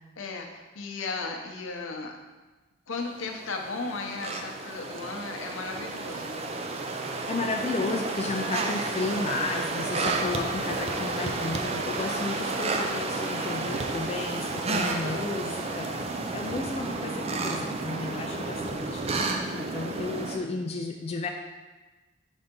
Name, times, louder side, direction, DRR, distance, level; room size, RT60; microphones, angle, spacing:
voice 1, 0.2-2.1 2.9-6.5 14.9-15.2, left 3 dB, 80° left, 2 dB, 0.7 m, -36 dB
sound 1, 3.1-20.4, right 3 dB, 30° right, 0.4 m, -31 dB
voice 2, 7.3-15.9 16.3-19.2 19.5-21.3, left 3 dB, 30° left, 2 dB, 0.4 m, -33 dB
4.4 x 4.1 x 5.2 m, 1.2 s
head